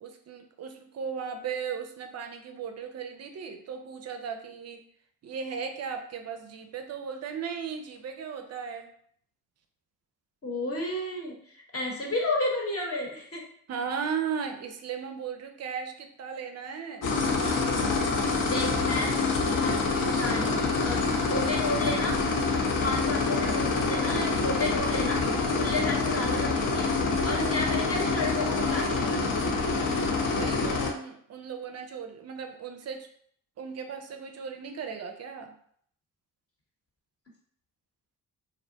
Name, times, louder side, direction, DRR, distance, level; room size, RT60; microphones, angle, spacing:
voice 1, 0.0-4.8 5.2-8.9 13.7-17.1 30.3-33.1 33.6-35.6, right 6 dB, 40° right, 5 dB, 0.5 m, -36 dB
voice 2, 10.4-11.4 11.7-13.5 18.4-22.3 22.8-25.3 25.6-26.9 27.2-29.3, left 2 dB, 35° left, -1 dB, 0.9 m, -32 dB
sound 1, 17.0-30.9, left 3 dB, 50° left, 0.6 m, -26 dB
2.6 x 2.1 x 2.7 m, 0.62 s
hypercardioid pair, 40°, 42 cm